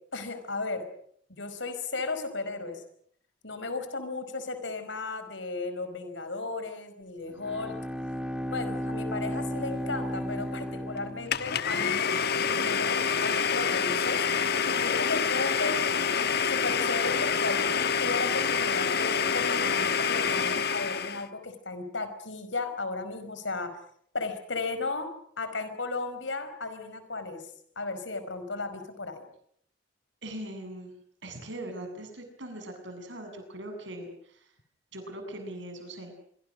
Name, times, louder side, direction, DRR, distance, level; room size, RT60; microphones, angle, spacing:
voice 1, 0.1-0.8 1.3-2.8 3.4-7.8 8.5-14.2 14.6-15.8 16.4-23.7 24.1-25.1 25.4-27.4 27.7-29.2, left 3 dB, 75° left, 10 dB, 5.0 m, -35 dB
Bowed string instrument, 7.3-12.0, equal, 5° right, 3.1 m, -34 dB
Domestic sounds home sounds, 11.3-21.3, left 6 dB, 60° left, 1.3 m, -27 dB
voice 2, 30.2-30.9 31.2-34.1 34.9-36.1, right 1 dB, 70° right, 6 dB, 7.7 m, -40 dB
26.5 x 24.0 x 6.5 m, 0.66 s
head